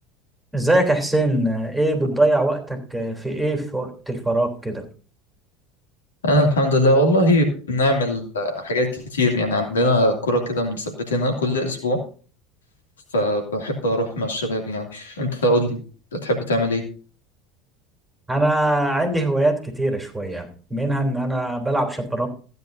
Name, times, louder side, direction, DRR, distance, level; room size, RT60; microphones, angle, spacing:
voice 1, 0.5-4.8 18.3-22.3, right 1 dB, 5° right, 4 dB, 3.4 m, -22 dB
voice 2, 6.2-12.0 13.1-15.8 16.1-16.8, equal, 85° left, 4 dB, 2.5 m, -21 dB
15.5 x 9.6 x 2.7 m, 0.39 s
hypercardioid pair, 75°, 0 cm